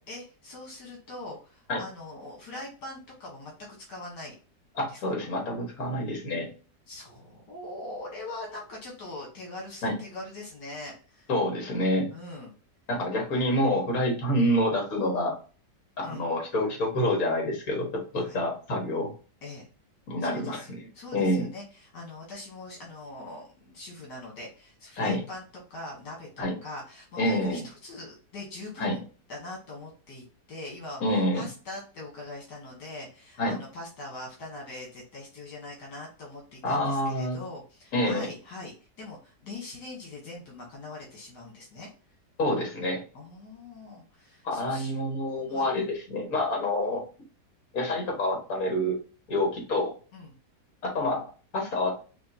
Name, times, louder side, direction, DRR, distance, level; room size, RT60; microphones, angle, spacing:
voice 1, 0.1-4.3 4.9-5.0 6.9-11.3 12.1-12.5 16.0-16.3 18.2-18.4 19.4-19.7 20.2-25.4 25.7-29.0 29.3-41.9 43.1-44.9 45.5-45.7 50.1-50.4, left 2 dB, 75° left, -2 dB, 1.9 m, -42 dB
voice 2, 4.8-6.5 9.8-9.9 11.3-12.1 12.9-15.4 16.0-19.1 20.1-20.8 21.1-21.5 25.0-25.2 26.4-26.5 27.2-27.6 28.8-29.0 31.0-31.5 33.4-33.6 36.6-37.4 37.9-38.3 42.4-43.0 44.4-47.0 47.7-49.0 49.3-49.9 50.8-51.2 51.5-51.9, left 1 dB, 55° left, 0 dB, 2.0 m, -27 dB
5.6 x 2.6 x 2.7 m, 0.36 s
omnidirectional pair, 1.8 m